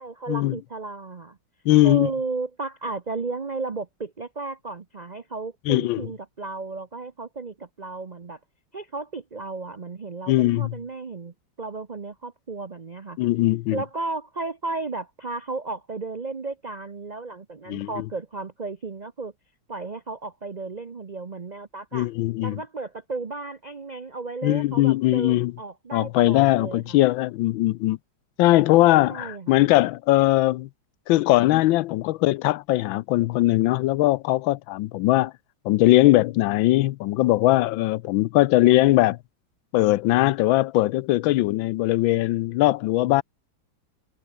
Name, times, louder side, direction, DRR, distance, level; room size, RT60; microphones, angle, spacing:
voice 1, 0.0-1.4 1.8-8.4 8.7-13.2 13.7-19.3 19.7-22.1 22.4-27.0 29.1-29.6, right 3 dB, 75° right, 0.3 m, -34 dB
voice 2, 1.7-2.1 5.7-6.0 10.3-10.7 13.2-13.8 17.7-18.1 21.9-22.6 24.4-25.5 25.9-28.0 28.4-30.7 31.1-35.3 35.6-39.2 39.7-43.2, left 17 dB, 80° left, 1.3 m, -20 dB
omnidirectional pair, 2.2 m